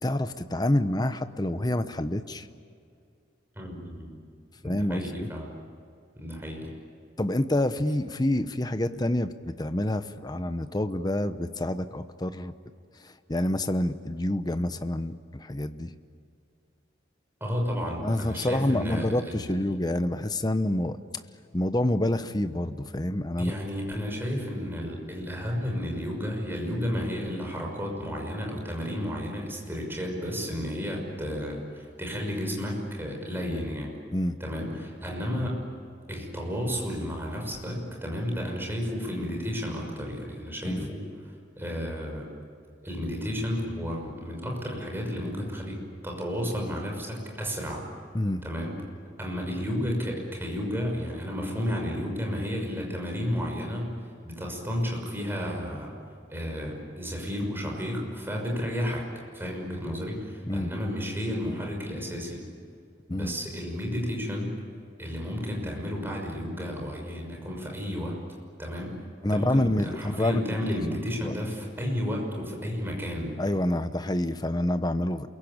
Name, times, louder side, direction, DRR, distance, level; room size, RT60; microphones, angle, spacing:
voice 1, 0.0-2.5 4.6-5.3 7.2-12.5 13.0-15.9 18.0-21.0 21.5-23.5 34.1-34.4 40.6-40.9 48.1-48.4 60.4-60.7 63.1-63.3 69.2-70.4 71.2-71.3 73.4-75.3, left 1 dB, 20° left, 10 dB, 0.9 m, -27 dB
voice 2, 3.6-4.1 4.6-5.5 6.2-6.7 17.4-19.7 23.4-34.0 34.4-35.6 36.1-41.0 41.6-42.3 42.8-47.9 48.4-48.8 49.2-53.9 54.2-55.9 56.3-59.1 59.3-62.4 63.1-64.5 65.0-68.2 68.6-68.9 69.3-73.3, equal, 10° right, 0 dB, 5.9 m, -32 dB
28.5 x 22.5 x 8.8 m, 2.4 s
head